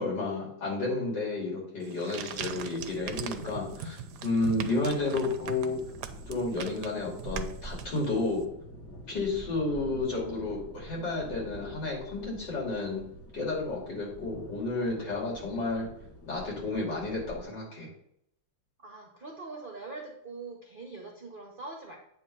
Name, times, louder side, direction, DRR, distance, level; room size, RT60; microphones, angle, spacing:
voice 1, 0.0-5.8 6.3-8.5 9.1-13.0 13.3-15.9 16.3-17.9, left 2 dB, 60° left, -3 dB, 3.2 m, -31 dB
sound 1, 1.8-8.4, right 7 dB, 70° right, 1.0 m, -41 dB
sound 2, 2.3-17.4, right 1 dB, 15° left, 0.5 m, -47 dB
voice 2, 18.8-22.0, right 3 dB, 45° right, 0 dB, 0.7 m, -43 dB
8.8 x 3.1 x 6.0 m, 0.72 s
omnidirectional pair, 2.1 m